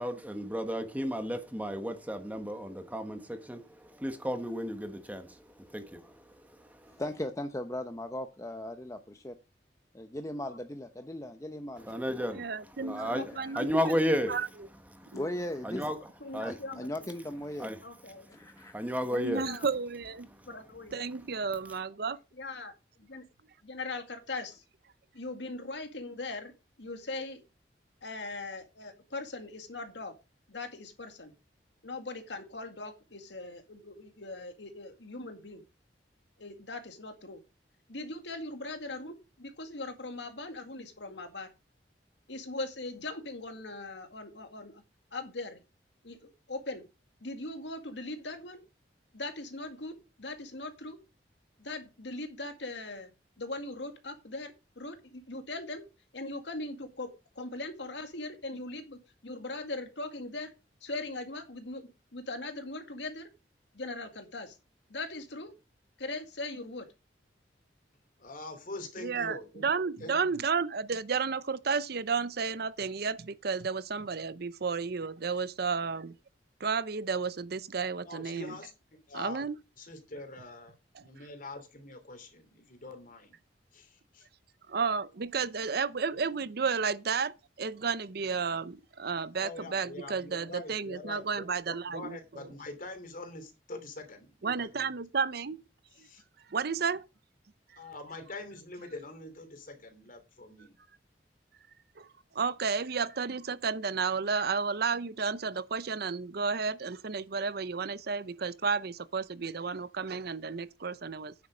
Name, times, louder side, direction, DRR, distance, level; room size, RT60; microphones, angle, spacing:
voice 1, 0.0-7.0 11.8-12.5 12.9-14.3 14.9-15.2 15.6-16.0 16.3-16.5 17.6-17.8 18.6-19.5, equal, 10° right, 1.3 m, -33 dB
voice 2, 7.0-9.3 9.9-11.9 12.8-13.5 14.3-14.4 15.1-16.0 16.4-17.7 18.3-18.7, left 1 dB, 20° left, 0.8 m, -38 dB
voice 3, 12.3-13.9 14.3-14.5 15.1-15.3 19.1-20.3 20.9-22.2 69.0-76.1 76.6-78.6 79.1-79.6 80.9-81.0 84.7-92.5 94.4-95.6 96.0-96.1 96.5-97.0 102.0-102.1 102.3-111.3, right 5 dB, 60° right, 0.7 m, -32 dB
voice 4, 13.1-13.5 16.2-17.1 17.8-18.2 19.3-19.7 20.5-21.1 21.7-21.8 22.4-22.7 23.0-23.3 23.6-24.6 25.1-26.5 26.8-27.4 28.0-30.1 30.5-31.3 31.8-35.6 36.4-37.4 37.9-41.5 42.3-44.8 45.1-45.6 46.0-46.8 47.2-48.6 49.1-51.0 51.6-53.1 53.4-55.8 56.1-57.1 57.4-60.5 60.8-63.3 63.7-64.6 64.9-65.5 66.0-66.9, left 2 dB, 75° left, 2.0 m, -40 dB
voice 5, 68.2-69.7 70.0-70.2 78.0-78.7 79.1-79.5 79.8-80.7 81.0-83.4 83.7-84.3 89.3-94.7 96.0-96.2 97.8-100.7, left 2 dB, 50° left, 2.9 m, -44 dB
9.6 x 7.4 x 5.0 m
head